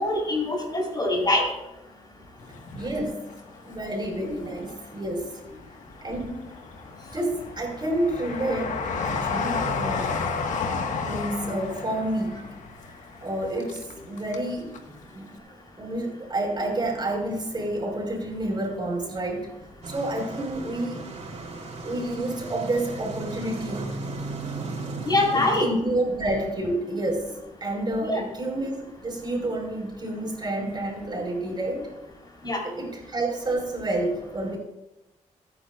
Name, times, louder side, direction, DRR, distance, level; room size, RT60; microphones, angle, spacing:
voice 1, 0.0-1.5 25.0-25.7 28.1-28.2 32.4-32.6, left 2 dB, 35° left, -1 dB, 4.5 m, -23 dB
Train, 2.5-3.8 4.2-5.2 5.7-14.5 14.7-14.8, left 4 dB, 75° left, 1.6 m, -32 dB
voice 2, 2.7-3.3 3.6-5.4 6.0-6.4 7.1-8.8 9.0-10.2 11.0-12.5 13.2-14.7 15.1-15.4 15.8-19.5 19.9-21.0 21.8-24.0 25.3-27.3 27.6-31.9 32.6-34.6, right 1 dB, 35° right, 0 dB, 5.0 m, -29 dB
sound 1, 19.8-25.7, right 3 dB, 55° right, 3.5 m, -36 dB
24.0 x 9.7 x 2.5 m, 0.95 s
cardioid pair, 80°, 13 cm